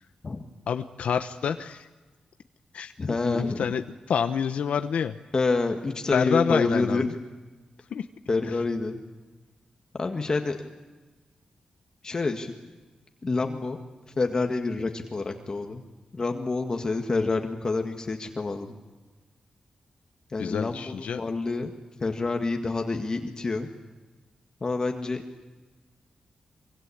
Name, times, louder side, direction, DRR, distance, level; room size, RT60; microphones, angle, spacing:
voice 1, 0.7-1.9 2.7-5.2 6.1-7.1 7.9-8.1 8.4-8.6 20.4-21.3, left 7 dB, 80° left, 8 dB, 0.9 m, -28 dB
voice 2, 3.0-3.6 5.3-7.1 8.3-9.0 9.9-10.6 12.0-12.5 13.2-13.8 14.1-15.8 16.1-18.8 20.3-21.7 22.0-23.7 24.6-25.2, left 3 dB, 35° left, 4 dB, 1.8 m, -27 dB
25.0 x 24.5 x 8.6 m, 1.2 s
wide cardioid pair, 135°, 2 cm